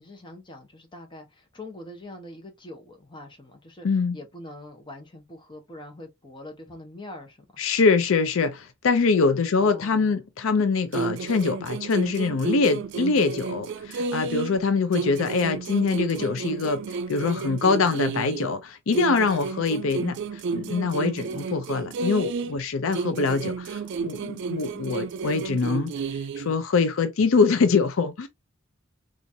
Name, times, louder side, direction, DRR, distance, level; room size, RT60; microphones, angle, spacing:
voice 1, 0.0-3.9 4.1-7.5 9.5-10.2, left 1 dB, 25° left, 1.0 m, -43 dB
voice 2, 3.8-4.2 7.6-25.9 26.4-28.3, left 4 dB, 80° left, 0.5 m, -24 dB
sound 1, 10.9-14.6 14.9-18.6 18.9-22.6 22.9-26.6, right 5 dB, 60° right, 0.3 m, -32 dB
3.9 x 2.5 x 2.6 m
head